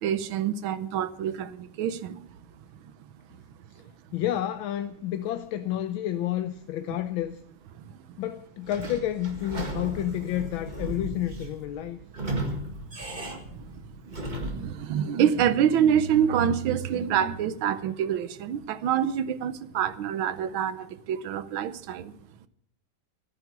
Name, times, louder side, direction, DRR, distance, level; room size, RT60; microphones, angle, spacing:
voice 1, 0.0-2.3 7.8-8.0 12.5-12.6 13.5-13.7 14.1-22.1, right 9 dB, 70° right, 1.6 m, -26 dB
voice 2, 4.1-7.4 8.2-12.0, left 12 dB, 75° left, 1.5 m, -30 dB
Sliding door / Squeak, 8.7-14.8, right 1 dB, 25° right, 1.6 m, -35 dB
13.5 x 9.7 x 8.0 m
omnidirectional pair, 2.3 m